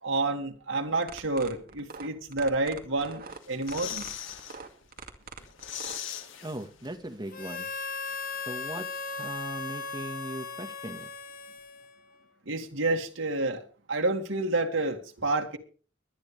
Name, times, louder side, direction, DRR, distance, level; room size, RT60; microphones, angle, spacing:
voice 1, 0.0-4.0 12.5-13.6 13.9-15.6, right 2 dB, 80° right, 2.2 m, -29 dB
sound 1, 0.9-6.0, right 4 dB, 50° right, 2.2 m, -43 dB
sound 2, 3.3-4.6 5.0-5.1 5.4-7.1 7.4-7.5, left 9 dB, 80° left, 2.1 m, -39 dB
voice 2, 6.4-7.7 8.5-11.1, right 1 dB, 20° right, 1.6 m, -39 dB
Harmonica, 7.3-12.2, left 4 dB, 50° left, 1.2 m, -37 dB
23.0 x 9.9 x 3.4 m
head